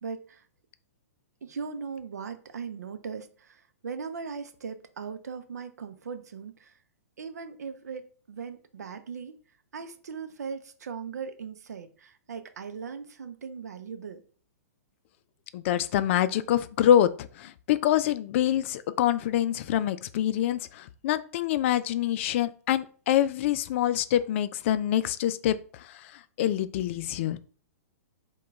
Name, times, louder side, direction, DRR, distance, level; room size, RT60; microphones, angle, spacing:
voice 1, 0.0-0.5 1.4-6.7 7.2-9.4 9.7-14.2, right 6 dB, 90° right, 0.5 m, -39 dB
voice 2, 15.5-25.6 25.9-26.0 26.4-27.4, left 11 dB, 50° left, 0.4 m, -25 dB
4.9 x 2.3 x 3.5 m
hypercardioid pair, 130°, 9 cm